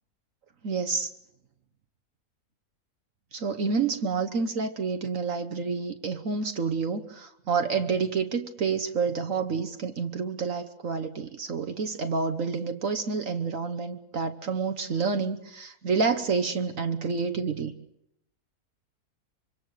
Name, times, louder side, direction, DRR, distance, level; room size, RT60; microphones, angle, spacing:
voice 1, 0.6-1.1 3.4-17.7, right 5 dB, 60° right, 7 dB, 1.4 m, -28 dB
25.5 x 25.0 x 6.5 m, 0.80 s
omnidirectional pair, 1.6 m